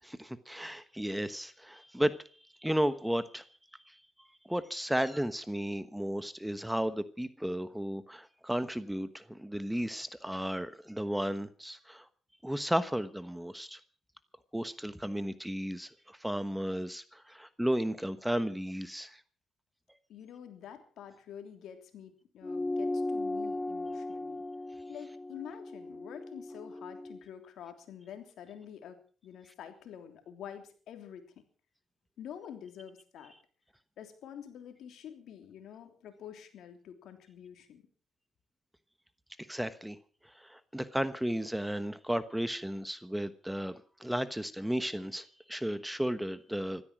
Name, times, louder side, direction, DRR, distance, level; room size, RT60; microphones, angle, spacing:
voice 1, 0.0-2.2 2.6-3.4 3.9-4.0 4.5-12.0 12.4-13.8 14.5-19.2 39.5-40.0 40.4-46.8, equal, 5° right, 1.1 m, -34 dB
voice 2, 20.1-24.4 24.9-31.4 32.2-33.3 34.0-37.8, left 9 dB, 75° left, 3.2 m, -48 dB
sound 1, 22.4-27.2, left 2 dB, 25° left, 1.1 m, -37 dB
15.5 x 13.0 x 6.2 m
cardioid pair, 90°, 0 cm